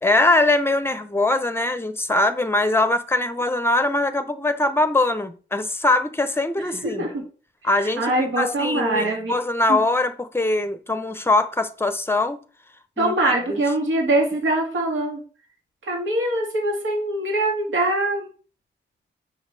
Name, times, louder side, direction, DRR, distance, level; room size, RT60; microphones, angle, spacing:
voice 1, 0.0-7.0 7.6-12.4 13.0-13.6, left 2 dB, 10° left, 0.8 m, -22 dB
voice 2, 6.8-7.2 7.8-9.3 9.7-9.8 13.0-15.2 15.8-18.2, right 1 dB, 80° right, 2.3 m, -23 dB
6.4 x 5.6 x 4.7 m
wide cardioid pair, 120°, 20 cm